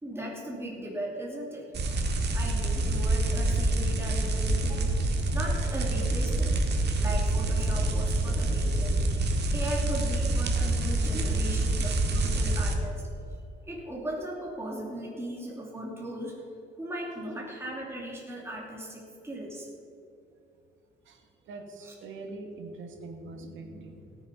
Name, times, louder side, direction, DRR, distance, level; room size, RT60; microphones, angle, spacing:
voice 1, 0.0-1.7 2.3-5.0 5.3-6.6 7.0-13.1 13.6-16.3 16.8-19.7 21.8-21.9, equal, 10° right, -3 dB, 2.8 m, -37 dB
sound 1, 1.7-12.7, right 2 dB, 60° right, 1.9 m, -26 dB
voice 2, 21.1-24.2, right 2 dB, 80° right, 4 dB, 2.0 m, -43 dB
18.0 x 7.2 x 5.3 m, 2.7 s
cardioid pair, 90°, 20 cm